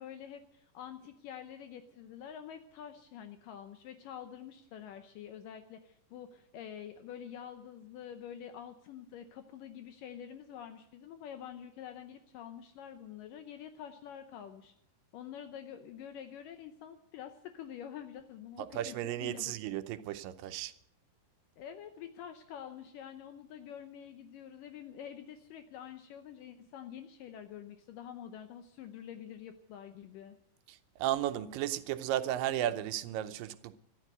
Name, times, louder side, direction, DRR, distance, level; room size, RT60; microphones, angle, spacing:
voice 1, 0.0-14.7 15.1-19.0 19.2-19.5 21.6-30.4, left 9 dB, 75° left, 2.3 m, -47 dB
voice 2, 18.6-20.7 30.7-33.8, right 12 dB, 80° right, 2.4 m, -34 dB
14.0 x 12.0 x 8.0 m
omnidirectional pair, 4.1 m